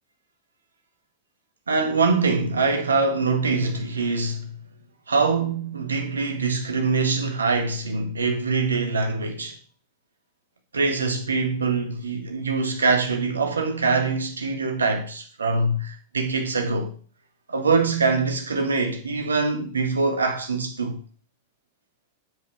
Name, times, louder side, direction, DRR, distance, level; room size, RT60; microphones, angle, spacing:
voice 1, 1.7-4.6 5.1-9.6 10.7-16.9 17.5-21.0, right 4 dB, 75° right, 1.6 m, -24 dB
8.0 x 7.9 x 3.5 m
figure-of-eight pair, 90°, 0 cm